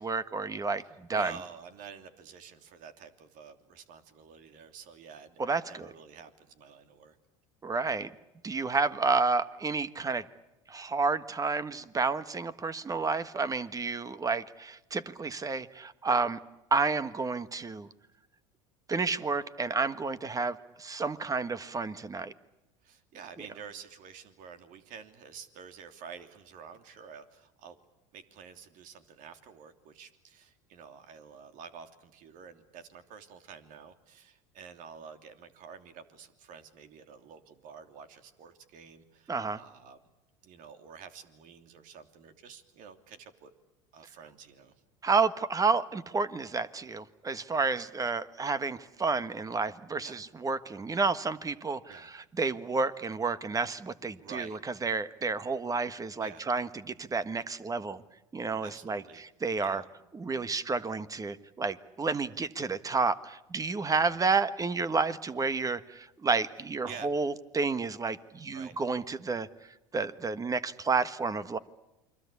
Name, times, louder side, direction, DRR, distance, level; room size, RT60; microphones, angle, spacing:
voice 1, 0.0-1.4 5.4-5.9 7.6-8.1 8.4-10.2 10.7-16.4 16.7-17.9 18.9-22.3 39.3-39.6 45.0-58.0 58.3-59.8 60.1-69.5 69.9-71.6, right 4 dB, 20° right, 14 dB, 1.5 m, -30 dB
voice 2, 0.8-7.2 22.8-27.8 28.1-40.0 40.4-43.5 43.9-44.7 48.0-48.1 50.0-50.2 51.9-52.1 54.2-54.6 56.2-56.4 58.6-59.2 59.6-59.9 64.0-64.2 66.9-67.1 68.4-68.8, right 6 dB, 60° right, 8 dB, 3.0 m, -49 dB
29.0 x 23.5 x 8.5 m, 0.96 s
hypercardioid pair, 90°, 16 cm